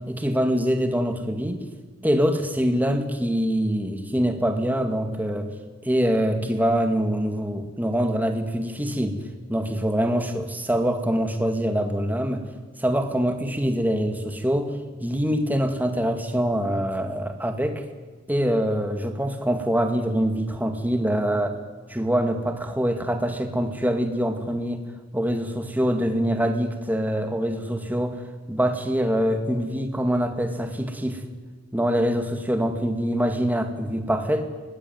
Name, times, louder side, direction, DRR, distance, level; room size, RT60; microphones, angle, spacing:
voice 1, 0.1-1.6 2.0-5.5 5.8-9.2 9.5-12.4 12.8-17.8 18.3-21.6 21.9-24.9 25.1-31.2 31.7-34.4, equal, 10° right, 5 dB, 2.2 m, -24 dB
25.5 x 19.0 x 9.5 m, 1.4 s
head